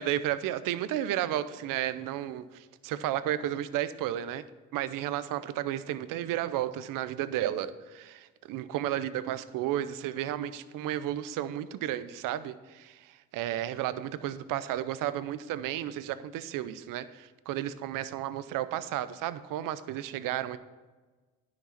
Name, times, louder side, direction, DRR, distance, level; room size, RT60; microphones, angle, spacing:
voice 1, 0.0-4.5 4.7-20.6, right 12 dB, 70° right, 14 dB, 0.7 m, -33 dB
10.0 x 6.1 x 5.8 m, 1.3 s
supercardioid pair, 90°, 34 cm